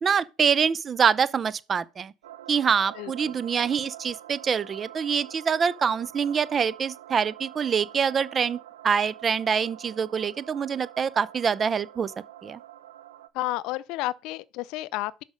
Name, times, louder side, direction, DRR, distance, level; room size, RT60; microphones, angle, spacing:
voice 1, 0.0-2.1 2.5-8.6 8.8-12.1 12.4-12.6, right 6 dB, 30° right, 0.6 m, -25 dB
sound 1, 2.2-13.3, right 13 dB, 90° right, 0.6 m, -46 dB
voice 2, 13.3-15.2, left 17 dB, 65° left, 0.5 m, -31 dB
6.2 x 5.0 x 6.5 m
supercardioid pair, 95°, 0 cm